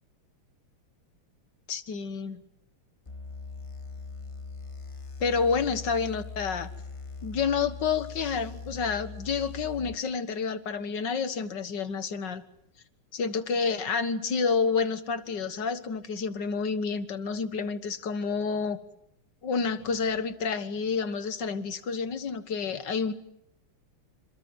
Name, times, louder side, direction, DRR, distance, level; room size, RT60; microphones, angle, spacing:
voice 1, 1.7-2.4 5.2-6.7 7.2-12.4 13.1-18.8 19.4-23.1, left 5 dB, 55° left, 11 dB, 2.0 m, -29 dB
sound 1, 3.1-9.9, left 4 dB, 25° left, 0.7 m, -41 dB
28.0 x 27.0 x 7.8 m, 0.78 s
omnidirectional pair, 2.3 m